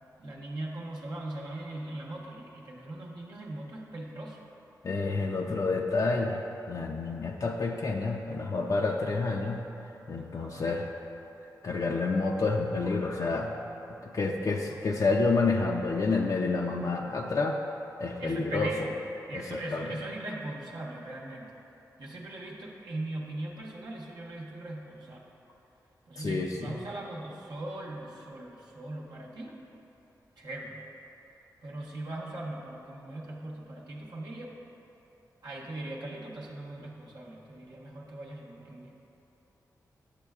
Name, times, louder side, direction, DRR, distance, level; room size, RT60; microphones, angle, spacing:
voice 1, 0.2-4.4 10.1-10.7 18.2-18.9 19.3-21.5 22.0-25.3 26.1-29.6 30.4-30.9 31.6-34.5 35.4-38.9, right 1 dB, 75° right, -4 dB, 0.9 m, -39 dB
voice 2, 4.8-6.4 6.7-9.7 10.1-10.8 11.6-13.5 14.0-17.6 18.0-18.7 19.3-19.9 26.2-26.8, left 3 dB, 50° left, 1 dB, 0.4 m, -29 dB
8.2 x 6.4 x 2.3 m, 3.0 s
cardioid pair, 50°, 7 cm